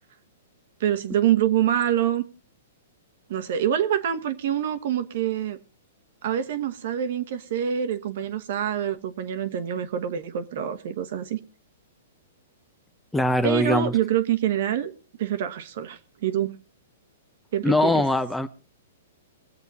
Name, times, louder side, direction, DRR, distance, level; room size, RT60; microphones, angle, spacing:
voice 1, 0.8-2.2 3.3-5.6 6.2-11.4 13.4-14.9 15.2-16.6 17.5-18.0, right 10 dB, 60° right, 10 dB, 1.4 m, -26 dB
voice 2, 13.1-13.9 17.6-18.5, left 1 dB, 5° left, 11 dB, 0.7 m, -21 dB
22.0 x 8.0 x 4.2 m, 0.35 s
hypercardioid pair, 130°, 0 cm